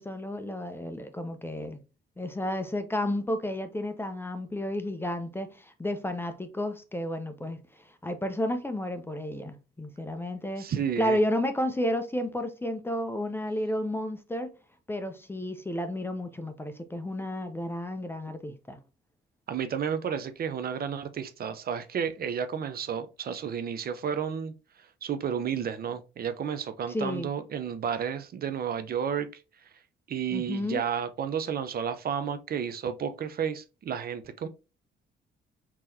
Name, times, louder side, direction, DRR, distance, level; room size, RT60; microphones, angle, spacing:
voice 1, 0.0-1.8 2.2-7.6 8.0-14.5 14.9-18.8 26.9-27.3 30.3-30.8, left 1 dB, 10° left, 0.5 m, -32 dB
voice 2, 10.6-11.2 19.5-24.5 25.0-29.3 30.1-34.5, right 7 dB, 50° right, 0.5 m, -32 dB
3.7 x 2.9 x 2.7 m
cardioid pair, 90°, 20 cm